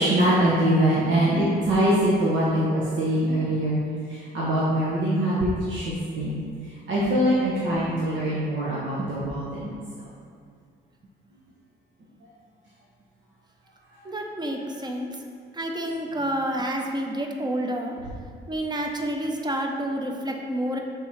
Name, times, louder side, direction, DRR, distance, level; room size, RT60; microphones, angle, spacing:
voice 1, 0.0-3.8 4.1-6.4 6.9-9.7, right 1 dB, 70° right, -7 dB, 1.1 m, -23 dB
voice 2, 14.0-15.1 15.5-17.9 18.5-20.8, right 1 dB, 20° right, 2 dB, 0.8 m, -29 dB
6.1 x 3.8 x 4.2 m, 2.2 s
cardioid pair, 90°, 20 cm